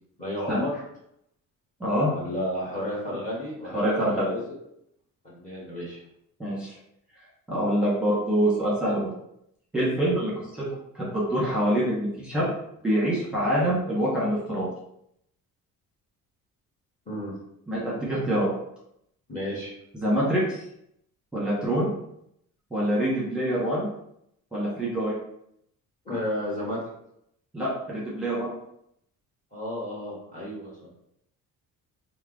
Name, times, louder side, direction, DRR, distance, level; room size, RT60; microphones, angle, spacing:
voice 1, 0.2-0.8 2.1-4.6 5.2-6.0 17.1-17.3 19.3-19.7 26.0-26.8 29.5-30.7, left 1 dB, 20° left, -6 dB, 1.3 m, -32 dB
voice 2, 1.8-2.1 3.7-4.3 6.4-6.8 7.5-9.1 9.7-10.6 10.9-12.5 12.8-14.7 17.7-18.5 20.0-20.6 21.3-21.9 22.7-23.9 24.5-25.1 27.5-28.5, equal, 5° right, -8 dB, 1.4 m, -25 dB
3.3 x 2.1 x 3.6 m, 0.76 s
cardioid pair, 100°, 34 cm